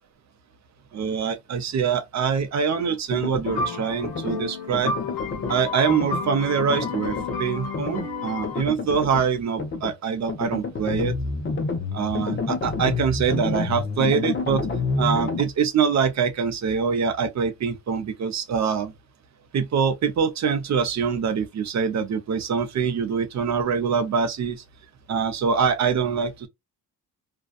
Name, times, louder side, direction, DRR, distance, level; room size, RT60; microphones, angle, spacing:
voice 1, 0.9-4.9 5.5-11.1 11.9-14.7 15.0-18.9 19.5-24.6 25.1-26.5, right 6 dB, 45° right, 0.7 m, -24 dB
sound 1, 3.1-3.7 4.0-4.4 4.7-5.5 5.9-6.2 6.6-7.4 7.7-8.1 8.4-9.2 9.6-9.9 10.3-15.4, left 4 dB, 30° left, 0.6 m, -29 dB
sound 2, 3.4-8.6, left 4 dB, 85° left, 0.8 m, -31 dB
2.6 x 2.3 x 2.2 m
cardioid pair, 120°, 38 cm